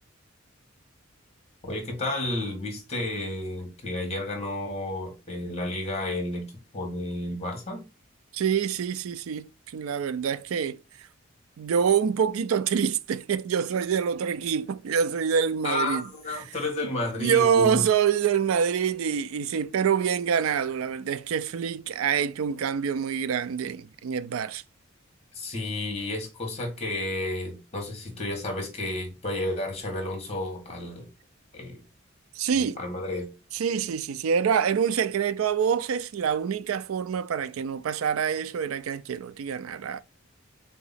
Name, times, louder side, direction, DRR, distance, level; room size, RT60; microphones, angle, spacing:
voice 1, 1.6-6.5 6.7-7.8 15.6-17.8 25.3-31.1 31.5-31.8 32.5-33.3, left 2 dB, 30° left, 1.4 m, -31 dB
voice 2, 8.3-10.8 11.6-16.0 17.2-24.6 32.4-32.8 33.5-40.0, right 7 dB, 85° right, 0.4 m, -26 dB
3.8 x 2.9 x 4.0 m
head